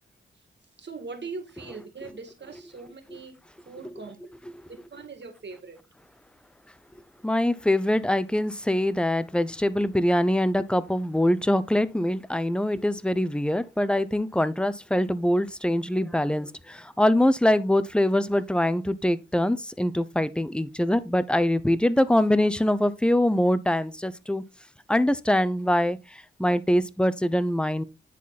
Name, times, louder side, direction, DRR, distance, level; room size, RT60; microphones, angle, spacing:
voice 1, 0.8-3.4 3.7-4.2 4.9-5.8, right 4 dB, 55° right, 2.3 m, -40 dB
voice 2, 7.2-24.4 24.9-27.8, left 1 dB, 5° left, 0.8 m, -23 dB
10.0 x 4.1 x 4.2 m
cardioid pair, 60°, 21 cm